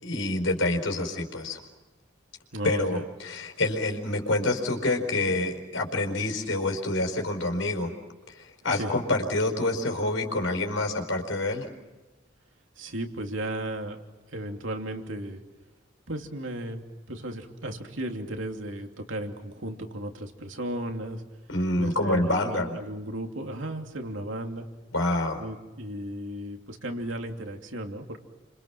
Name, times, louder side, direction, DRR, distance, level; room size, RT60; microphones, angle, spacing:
voice 1, 0.0-1.6 2.6-7.9 8.3-11.7 21.5-22.8 24.9-25.4, left 2 dB, 85° left, 4 dB, 4.9 m, -27 dB
voice 2, 2.5-3.0 8.7-8.9 12.8-14.0 14.3-15.4 16.1-21.2 21.8-24.7 25.4-28.2, right 1 dB, 80° right, 3 dB, 2.9 m, -35 dB
30.0 x 26.0 x 6.0 m, 1.2 s
head